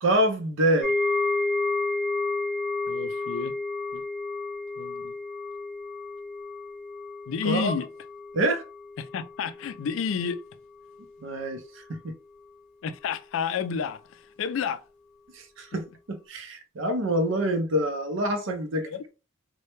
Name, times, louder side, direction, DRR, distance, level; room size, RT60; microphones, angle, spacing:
voice 1, 0.0-0.9 7.4-7.7 8.3-8.6 11.2-11.6 15.6-15.8 16.3-18.9, right 1 dB, 70° right, 0.6 m, -25 dB
sound 1, 0.8-9.9 10.2-10.5 10.9-11.0, left 3 dB, 5° left, 0.8 m, -31 dB
voice 2, 2.9-3.5 3.9-4.0 4.8-5.1 7.3-7.9 9.0-10.4 12.8-14.8 18.8-19.1, left 6 dB, 75° left, 0.3 m, -31 dB
2.2 x 2.1 x 2.9 m
head